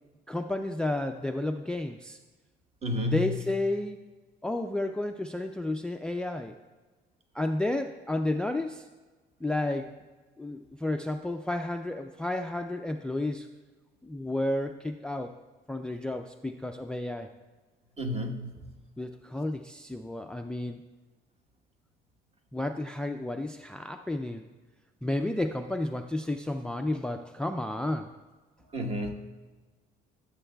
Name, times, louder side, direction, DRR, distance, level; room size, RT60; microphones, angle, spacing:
voice 1, 0.3-2.2 3.0-4.0 4.4-6.6 7.3-8.9 9.4-9.9 10.4-13.5 14.0-15.4 15.7-17.3 19.0-20.8 22.5-24.5 25.0-28.1, left 1 dB, 5° left, 7 dB, 0.3 m, -31 dB
voice 2, 2.8-3.3 18.0-18.5 28.7-29.1, left 1 dB, 35° right, 3 dB, 1.2 m, -31 dB
14.0 x 7.1 x 2.2 m, 1.3 s
cardioid pair, 110°, 17 cm